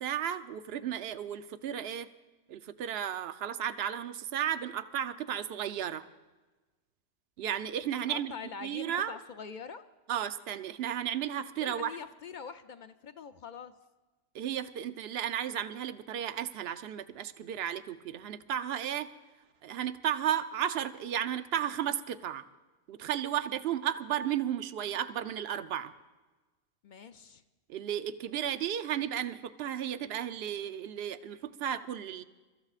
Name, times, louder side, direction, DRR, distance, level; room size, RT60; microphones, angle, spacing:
voice 1, 0.0-2.1 2.5-6.0 7.4-8.3 8.6-9.2 10.1-11.9 14.3-19.1 19.6-22.4 22.9-25.9 27.7-32.2, right 10 dB, 65° right, 11 dB, 0.8 m, -34 dB
voice 2, 8.1-9.8 11.6-13.7 26.8-27.4, left 6 dB, 55° left, 9 dB, 0.6 m, -44 dB
29.5 x 14.0 x 2.4 m, 1.2 s
omnidirectional pair, 1.2 m